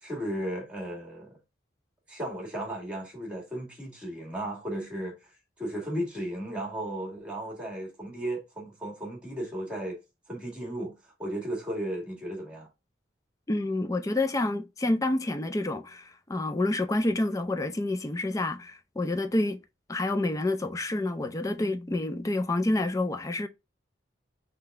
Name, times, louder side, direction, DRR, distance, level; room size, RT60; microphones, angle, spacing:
voice 1, 0.0-1.4 2.1-5.2 5.6-10.0 10.3-12.7, right 1 dB, 5° right, 1.8 m, -35 dB
voice 2, 13.5-19.6 19.9-23.5, left 2 dB, 20° left, 0.4 m, -28 dB
3.9 x 3.3 x 3.5 m
head